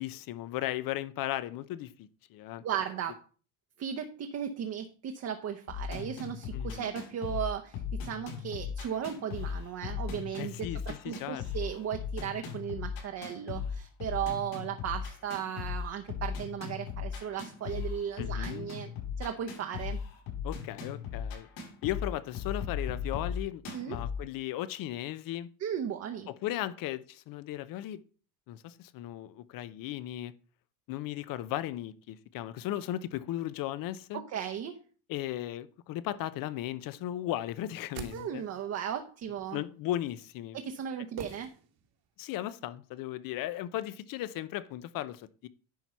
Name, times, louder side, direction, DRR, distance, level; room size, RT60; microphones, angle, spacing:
voice 1, 0.0-2.6 6.5-6.9 10.4-11.4 18.2-18.7 20.4-21.5 21.8-25.5 26.3-28.0 28.5-30.3 30.9-34.2 35.1-38.4 39.5-40.6 42.2-45.5, left 13 dB, 50° left, 0.7 m, -36 dB
voice 2, 2.6-3.2 3.8-20.0 23.7-24.0 25.6-26.3 34.1-34.8 38.1-39.6 40.5-41.5, right 9 dB, 35° right, 0.9 m, -36 dB
sound 1, 5.7-24.2, left 6 dB, 70° left, 5.8 m, -37 dB
sound 2, 37.6-38.8 41.2-42.1 42.3-42.4, right 7 dB, 55° right, 1.6 m, -46 dB
10.5 x 4.5 x 5.5 m
cardioid pair, 145°, 44 cm